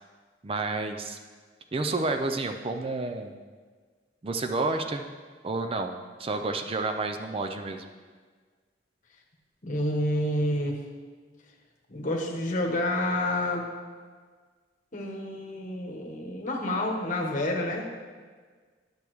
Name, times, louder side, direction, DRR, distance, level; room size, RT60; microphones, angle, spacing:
voice 1, 0.4-1.2 1.7-3.3 4.2-5.0 5.4-5.9 6.2-7.8, right 3 dB, 30° right, 6 dB, 0.4 m, -30 dB
voice 2, 9.6-10.8 11.9-13.7 14.9-17.9, left 1 dB, 45° left, 0 dB, 1.1 m, -29 dB
10.0 x 6.9 x 3.1 m, 1.5 s
head